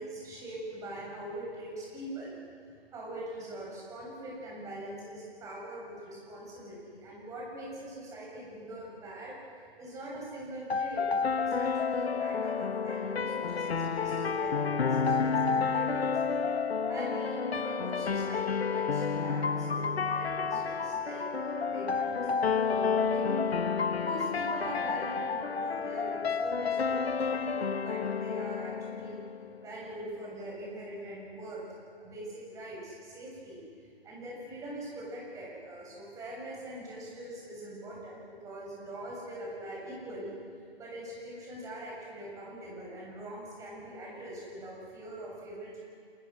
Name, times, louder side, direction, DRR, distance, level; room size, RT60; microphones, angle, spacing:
voice 1, 0.0-2.3 2.9-9.4 9.8-16.1 16.9-23.6 24.0-29.2 29.6-31.6 32.0-33.6 34.0-40.4 40.8-45.8, right 1 dB, 10° right, -4 dB, 7.5 m, -42 dB
sound 1, 10.7-29.6, left 5 dB, 80° left, 1.3 m, -30 dB
28.5 x 28.0 x 6.4 m, 2.2 s
hypercardioid pair, 155°, 31 cm